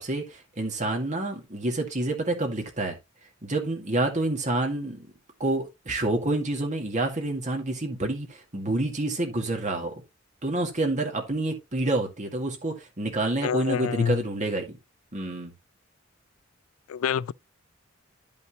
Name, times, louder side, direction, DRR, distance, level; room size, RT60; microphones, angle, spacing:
voice 1, 0.0-3.0 3.4-5.1 5.4-9.9 10.4-14.8 15.1-15.5, right 2 dB, 35° right, 2.0 m, -28 dB
voice 2, 13.4-14.2 16.9-17.3, left 7 dB, 85° left, 0.3 m, -27 dB
10.5 x 5.6 x 3.0 m
head